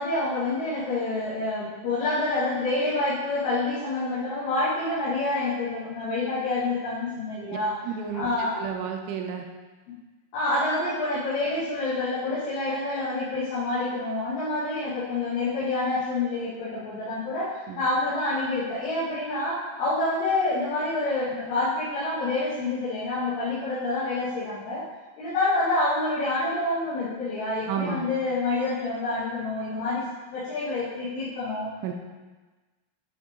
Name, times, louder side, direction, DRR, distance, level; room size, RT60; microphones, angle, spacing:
voice 1, 0.0-7.7 8.1-8.6 10.3-24.8 25.2-30.0 30.3-31.7, left 2 dB, 70° left, -12 dB, 4.4 m, -27 dB
voice 2, 7.8-9.5 17.7-17.8 27.7-28.1 31.8-31.9, right 7 dB, 80° right, 3 dB, 2.9 m, -32 dB
10.5 x 6.6 x 3.7 m, 1.3 s
omnidirectional pair, 5.9 m